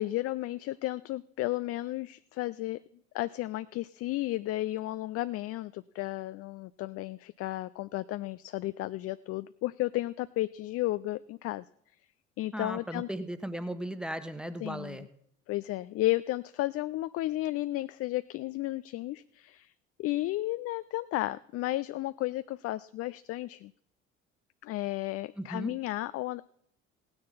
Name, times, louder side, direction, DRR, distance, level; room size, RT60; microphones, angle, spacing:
voice 1, 0.0-2.8 3.1-11.6 12.4-13.1 14.6-15.0 15.5-19.7 20.0-23.7 24.6-26.4, left 17 dB, 45° left, 15 dB, 0.4 m, -33 dB
voice 2, 12.5-15.1 25.4-25.7, right 1 dB, ahead, 10 dB, 1.3 m, -36 dB
16.5 x 9.7 x 4.1 m, 0.69 s
hypercardioid pair, 60°, 35 cm